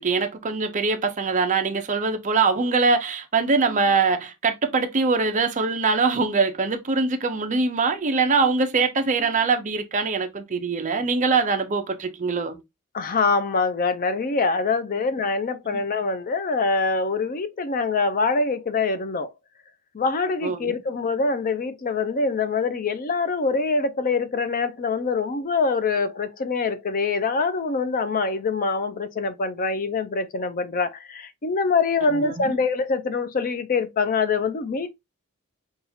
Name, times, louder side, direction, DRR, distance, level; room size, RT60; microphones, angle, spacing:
voice 1, 0.0-12.6 15.7-15.8 20.4-20.7 32.1-32.6, right 4 dB, 35° right, 0.6 m, -23 dB
voice 2, 12.9-19.3 19.9-34.9, left 4 dB, 40° left, 0.4 m, -24 dB
5.6 x 2.4 x 2.7 m
head